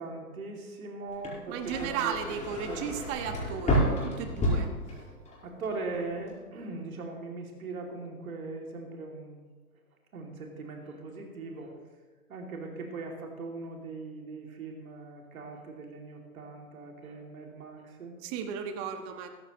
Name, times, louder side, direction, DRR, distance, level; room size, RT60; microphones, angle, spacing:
voice 1, 0.0-2.1 2.7-2.8 5.4-9.4 10.1-11.7 12.3-18.2, right 3 dB, 65° right, 1 dB, 2.7 m, -40 dB
sound 1, 1.1-5.4 5.7-6.3, equal, 15° left, 4.7 m, -30 dB
voice 2, 1.5-4.7 18.2-19.3, right 7 dB, 30° right, 7 dB, 1.3 m, -35 dB
15.5 x 14.0 x 3.1 m, 1.3 s
figure-of-eight pair, 115°, 45 cm